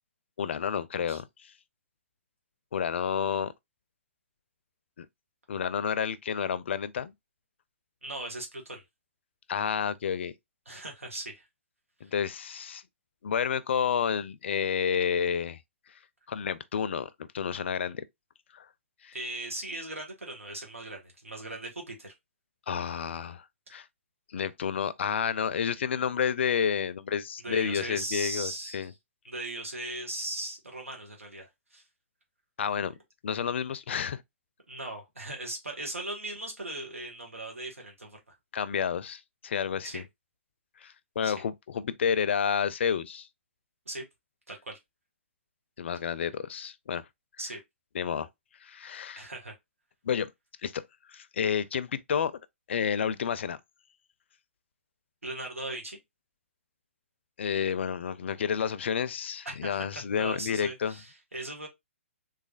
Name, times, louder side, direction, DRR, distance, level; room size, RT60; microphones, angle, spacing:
voice 1, 0.4-1.5 2.7-3.5 5.0-5.1 5.5-7.1 9.5-10.3 12.0-12.8 13.2-15.6 16.3-17.1 17.3-18.1 18.5-18.7 19.0-19.1 22.7-23.4 23.7-23.9 24.3-28.9 32.6-33.0 33.2-34.2 38.5-40.0 40.8-43.3 45.8-47.1 47.9-48.3 48.6-49.2 50.0-50.3 50.6-50.8 51.1-52.3 52.7-53.6 57.4-61.0, left 7 dB, 60° left, 0.4 m, -30 dB
voice 2, 8.0-8.8 10.7-11.5 12.0-12.1 19.1-22.1 27.4-28.9 29.3-31.8 34.7-38.2 39.8-40.0 41.2-41.3 43.9-44.0 44.5-44.8 47.4-47.6 49.2-49.6 55.2-56.0 59.6-61.7, right 2 dB, 90° right, 1.8 m, -38 dB
3.6 x 3.2 x 2.4 m
figure-of-eight pair, 130°, 7 cm